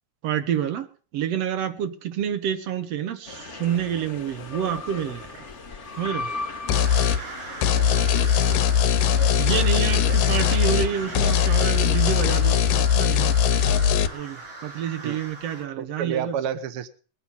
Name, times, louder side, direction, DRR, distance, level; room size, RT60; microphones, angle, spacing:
voice 1, 0.2-5.5 6.0-6.3 9.4-16.4, right 9 dB, 65° right, 1.7 m, -28 dB
sound 1, 3.2-12.6, left 3 dB, 50° left, 0.8 m, -38 dB
sound 2, 6.7-7.2 7.6-10.9 11.2-14.1, left 8 dB, 85° left, 2.5 m, -20 dB
sound 3, 6.7-15.7, right 3 dB, 40° right, 3.9 m, -39 dB
voice 2, 7.8-8.6 9.9-10.2 15.0-15.2 15.8-16.9, right 8 dB, 80° right, 1.2 m, -32 dB
20.5 x 9.1 x 5.5 m
omnidirectional pair, 3.8 m